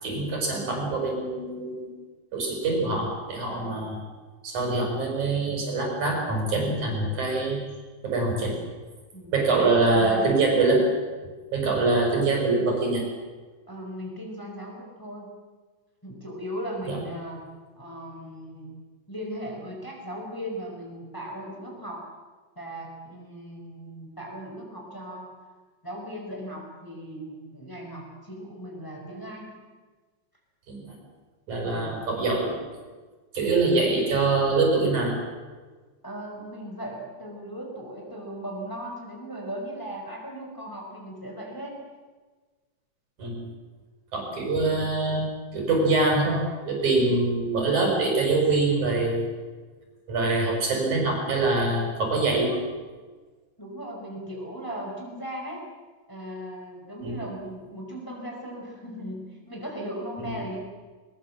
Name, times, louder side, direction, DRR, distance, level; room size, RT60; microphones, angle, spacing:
voice 1, 0.0-1.9 2.3-4.0 4.4-7.6 8.0-8.6 9.3-10.9 11.5-13.0 16.9-17.0 30.7-31.0 31.5-32.6 33.3-35.2 43.2-43.5 44.1-49.2 50.1-52.6 57.0-57.2 60.2-60.4, right 3 dB, 75° right, 0 dB, 7.4 m, -24 dB
voice 2, 9.1-10.3 13.7-15.3 16.0-17.5 17.7-18.8 19.1-22.1 22.5-25.3 25.8-29.5 31.6-32.2 36.0-41.8 53.6-55.6 56.1-60.6, equal, 5° left, 0 dB, 4.8 m, -38 dB
21.5 x 21.5 x 7.7 m, 1.4 s
omnidirectional pair, 3.4 m